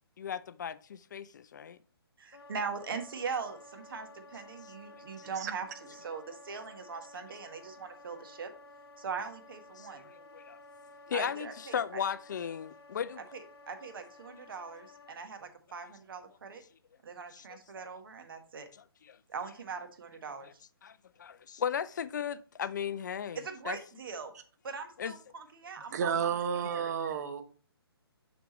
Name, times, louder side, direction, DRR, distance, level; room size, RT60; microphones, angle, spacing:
voice 1, 0.2-1.8 5.2-5.3 9.8-10.6 11.1-13.3 17.3-18.0 18.7-19.2 20.4-20.5 20.8-23.8 25.0-25.1, left 8 dB, 45° left, 0.4 m, -37 dB
voice 2, 2.2-5.7 6.0-8.5 9.0-10.1 11.1-12.0 13.3-16.6 17.0-18.7 19.3-20.5 23.4-24.3 24.6-26.3 26.6-26.9, right 5 dB, 60° right, 1.4 m, -41 dB
Wind instrument woodwind instrument, 2.3-15.2, left 2 dB, 70° left, 0.9 m, -54 dB
voice 3, 25.9-27.4, right 7 dB, 40° right, 0.9 m, -31 dB
6.8 x 6.1 x 3.0 m
hypercardioid pair, 150°, 13 cm